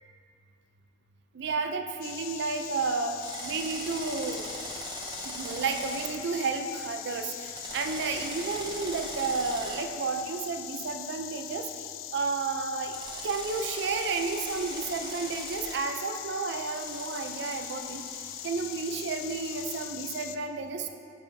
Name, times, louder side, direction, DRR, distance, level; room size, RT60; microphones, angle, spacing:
voice 1, 1.3-4.5 5.2-11.7 12.1-18.1 18.4-20.9, right 4 dB, 60° right, 6 dB, 0.5 m, -32 dB
Insect, 2.0-20.4, left 12 dB, 75° left, 0.3 m, -41 dB
Drill, 3.2-6.1 7.5-9.8 12.9-15.7 16.7-19.8, right 2 dB, 20° right, 0.7 m, -41 dB
11.0 x 5.5 x 2.7 m, 2.3 s
head